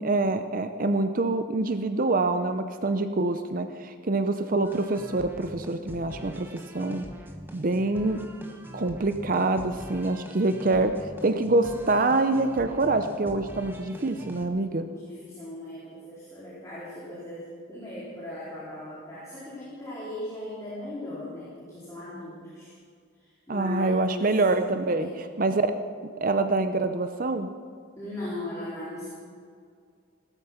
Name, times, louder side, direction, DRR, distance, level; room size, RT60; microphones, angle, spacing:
voice 1, 0.0-7.0 7.5-8.2 8.7-14.9 23.5-25.8 26.2-27.5, right 2 dB, 45° right, 8 dB, 0.6 m, -25 dB
sound 1, 4.6-14.5, equal, 10° right, 1.2 m, -43 dB
voice 2, 14.7-22.7 23.2-24.2 24.9-25.2 28.0-29.1, left 1 dB, 15° left, -10 dB, 4.0 m, -38 dB
17.5 x 12.5 x 5.7 m, 2.2 s
head